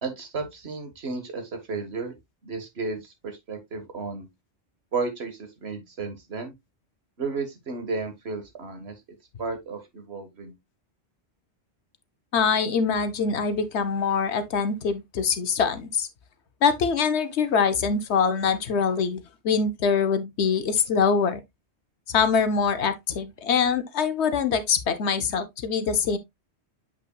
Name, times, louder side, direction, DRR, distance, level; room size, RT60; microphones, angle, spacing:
voice 1, 0.0-2.1 2.4-4.3 4.9-6.5 7.2-9.0 9.4-10.5, right 4 dB, 70° right, 1.7 m, -33 dB
voice 2, 12.3-16.1 16.6-21.4 22.1-26.2, left 6 dB, 80° left, 1.1 m, -24 dB
7.8 x 5.5 x 2.2 m
omnidirectional pair, 1.1 m